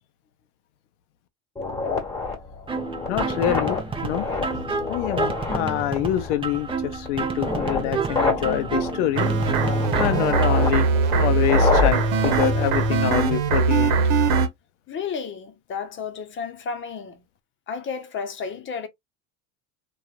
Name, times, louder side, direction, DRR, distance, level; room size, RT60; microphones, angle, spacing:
sound 1, 1.6-13.5, left 3 dB, 10° left, 1.3 m, -29 dB
sound 2, 2.7-10.7, right 4 dB, 15° right, 0.6 m, -30 dB
voice 1, 3.1-3.8 4.0-4.3 4.9-9.3 10.0-10.9 11.1-14.0, left 12 dB, 90° left, 0.5 m, -26 dB
sound 3, 9.2-14.5, right 3 dB, 75° right, 0.9 m, -21 dB
voice 2, 14.9-17.2 17.7-18.9, left 6 dB, 35° left, 0.8 m, -32 dB
2.9 x 2.3 x 2.4 m
supercardioid pair, 100°, 35 cm